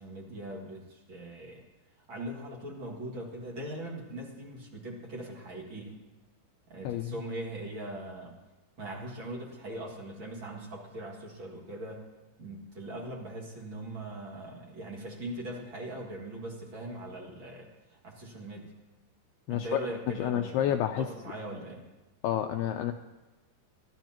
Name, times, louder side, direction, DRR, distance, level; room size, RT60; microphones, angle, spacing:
voice 1, 0.0-1.6 2.1-6.0 6.7-8.4 8.8-12.0 12.4-18.7 19.5-21.9, right 1 dB, 40° right, -2 dB, 1.9 m, -41 dB
voice 2, 19.5-19.8 20.2-21.1 22.2-22.9, left 11 dB, 85° left, 5 dB, 2.3 m, -29 dB
27.5 x 12.5 x 3.0 m, 1.1 s
omnidirectional pair, 5.2 m